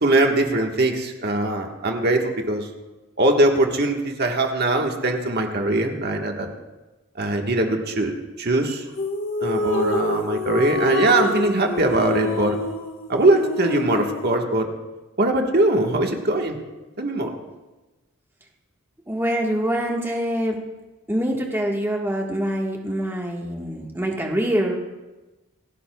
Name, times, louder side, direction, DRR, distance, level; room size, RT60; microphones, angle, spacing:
voice 1, 0.0-2.6 3.2-6.5 7.2-8.1 8.4-8.8 9.4-12.6 13.1-14.7 15.2-16.6 17.0-17.3, right 2 dB, 45° right, 2 dB, 1.4 m, -21 dB
sound 1, 8.9-14.3, left 2 dB, 60° left, 1.4 m, -27 dB
voice 2, 19.1-20.6 21.1-24.7, equal, 10° right, -1 dB, 1.4 m, -25 dB
28.5 x 11.0 x 2.3 m, 1.1 s
head